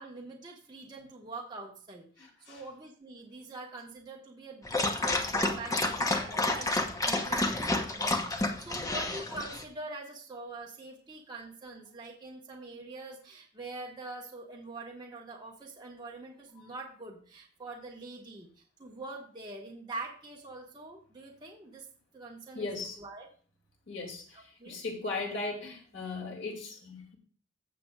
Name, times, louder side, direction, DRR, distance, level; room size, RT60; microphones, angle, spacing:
voice 1, 0.0-21.9 22.1-23.3 24.3-24.8, right 2 dB, 25° right, 1.3 m, -44 dB
Dog, 4.7-9.6, left 2 dB, 20° left, 0.9 m, -30 dB
voice 2, 22.5-23.0 23.9-24.2 24.7-27.2, left 3 dB, 85° left, 2.6 m, -37 dB
16.0 x 6.8 x 2.4 m
head